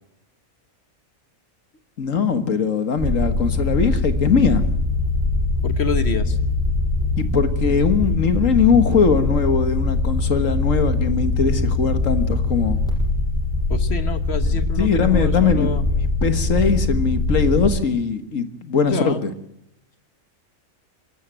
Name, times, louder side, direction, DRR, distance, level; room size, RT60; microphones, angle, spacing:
voice 1, 2.0-4.6 7.2-12.8 14.5-15.7 16.2-19.3, left 5 dB, 75° left, 9 dB, 1.9 m, -20 dB
sound 1, 3.0-17.7, left 3 dB, 5° left, 6.4 m, -22 dB
voice 2, 5.6-6.4 13.7-15.8 18.8-19.2, left 5 dB, 55° left, 10 dB, 1.4 m, -27 dB
22.5 x 13.0 x 9.0 m, 0.81 s
omnidirectional pair, 1.4 m